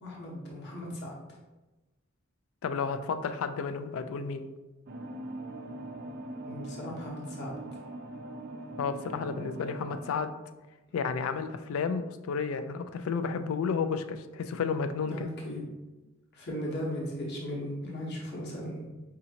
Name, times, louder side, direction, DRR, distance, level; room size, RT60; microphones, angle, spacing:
voice 1, 0.0-1.1 6.5-7.6 15.1-15.6 16.3-19.0, left 1 dB, 55° left, -4 dB, 1.0 m, -37 dB
voice 2, 2.6-4.5 8.8-10.3 10.9-15.3, left 5 dB, 85° left, 10 dB, 0.3 m, -32 dB
sound 1, 4.9-10.2, right 2 dB, 50° right, 0.4 m, -42 dB
4.9 x 2.8 x 2.8 m, 1.1 s
head